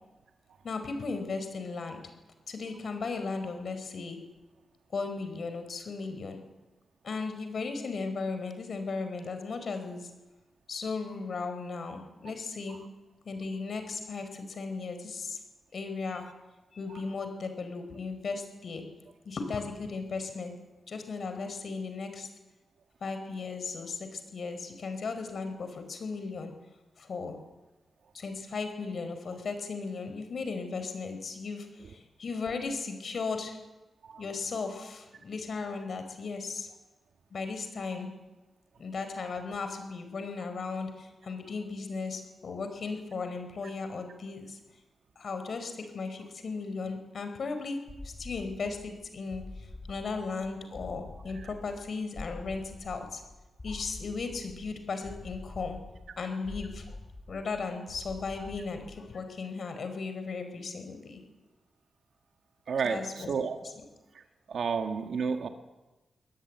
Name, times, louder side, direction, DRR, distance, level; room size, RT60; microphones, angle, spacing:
voice 1, 0.6-2.0 2.5-4.2 4.9-6.4 7.0-10.1 10.7-12.8 13.2-15.4 15.7-16.2 16.7-18.8 19.2-20.5 20.9-22.3 23.0-26.5 27.0-27.4 28.1-33.6 34.2-36.7 37.3-38.1 38.8-44.6 45.2-47.8 48.0-53.2 53.6-55.8 56.2-57.0 57.3-61.2 62.8-63.3 63.6-63.7, left 4 dB, 55° left, 8 dB, 4.7 m, -36 dB
sound 1, 47.9-59.2, left 2 dB, 20° left, 1.5 m, -46 dB
voice 2, 62.7-63.7 64.5-65.5, right 5 dB, 70° right, 6 dB, 1.9 m, -31 dB
24.5 x 18.5 x 9.5 m, 1.1 s
wide cardioid pair, 145°, 0 cm